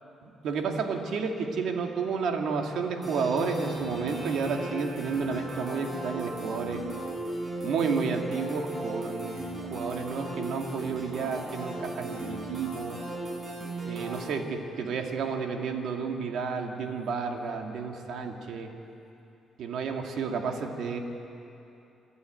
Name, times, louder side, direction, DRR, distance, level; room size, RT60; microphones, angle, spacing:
voice 1, 0.2-6.8 7.6-13.0 13.9-18.7 19.6-21.0, right 5 dB, 75° right, 3 dB, 2.0 m, -31 dB
sound 1, 3.0-14.3, right 1 dB, 25° right, 7.2 m, -37 dB
28.0 x 11.5 x 9.0 m, 2.8 s
cardioid pair, 90°, 0 cm